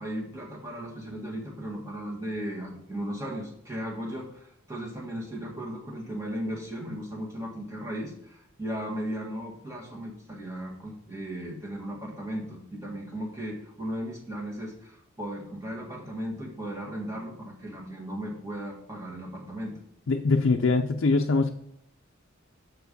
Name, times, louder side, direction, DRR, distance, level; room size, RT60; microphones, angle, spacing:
voice 1, 0.0-19.7, equal, 15° right, -2 dB, 1.7 m, -36 dB
voice 2, 20.1-21.5, left 3 dB, 65° left, 3 dB, 0.5 m, -23 dB
6.3 x 4.6 x 6.7 m, 0.72 s
head